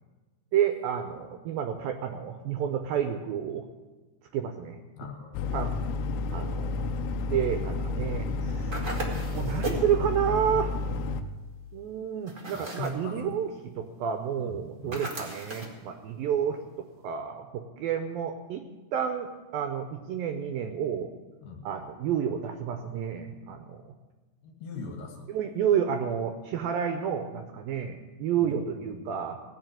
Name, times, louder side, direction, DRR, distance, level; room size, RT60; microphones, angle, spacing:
voice 1, 0.5-3.7 4.3-4.8 5.5-5.7 6.3-6.9 7.3-10.7 11.7-16.6 17.0-18.6 18.9-21.1 21.6-23.8 25.3-29.4, right 8 dB, 75° right, 6 dB, 2.2 m, -30 dB
voice 2, 5.0-5.6 12.5-13.2 14.4-15.1 21.4-21.7 24.4-25.3 28.4-29.0, left 3 dB, 60° left, 2 dB, 2.8 m, -41 dB
sound 1, 5.3-11.2, left 3 dB, 90° left, 2.9 m, -31 dB
sound 2, 8.7-9.9 12.3-13.0 14.9-15.8, right 2 dB, 45° right, 1.0 m, -36 dB
17.0 x 6.0 x 9.0 m, 1.2 s
omnidirectional pair, 4.8 m